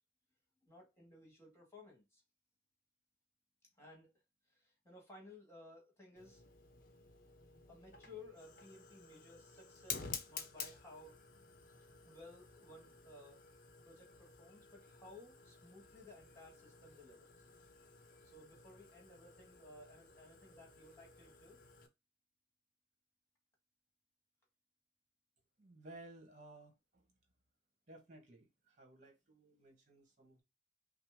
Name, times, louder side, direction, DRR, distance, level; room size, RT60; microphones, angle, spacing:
voice 1, 0.6-2.2 3.8-4.1 4.5-6.4 7.7-11.2 12.0-13.4 13.8-17.5 18.2-21.6, left 2 dB, 15° left, 1.7 m, -58 dB
Fire, 6.2-21.9, left 6 dB, 45° left, 0.8 m, -52 dB
voice 2, 25.6-27.1 27.9-30.4, right 2 dB, 40° right, 1.4 m, -57 dB
5.6 x 2.1 x 3.6 m
head